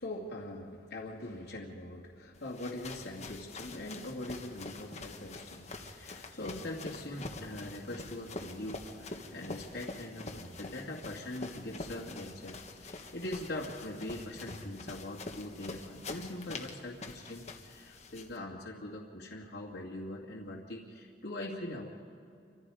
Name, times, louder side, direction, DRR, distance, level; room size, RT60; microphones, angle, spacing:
voice 1, 0.0-21.9, left 1 dB, 70° left, -5 dB, 2.3 m, -42 dB
sound 1, 2.3-18.4, left 2 dB, 40° left, 1.5 m, -45 dB
28.0 x 25.5 x 4.9 m, 2.5 s
head